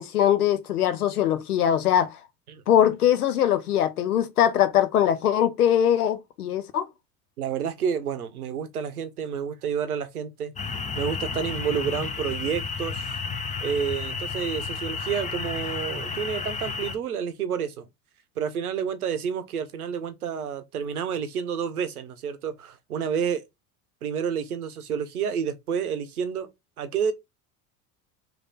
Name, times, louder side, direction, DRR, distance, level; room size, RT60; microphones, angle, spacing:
voice 1, 0.0-2.2 2.7-6.9, left 10 dB, 90° left, 0.7 m, -22 dB
voice 2, 7.4-13.1 13.6-17.9 18.4-23.4 24.0-26.5 26.8-27.1, right 7 dB, 90° right, 0.7 m, -29 dB
sound 1, 10.6-17.0, left 5 dB, 15° left, 0.7 m, -32 dB
3.3 x 2.6 x 4.0 m
hypercardioid pair, 75°, 43 cm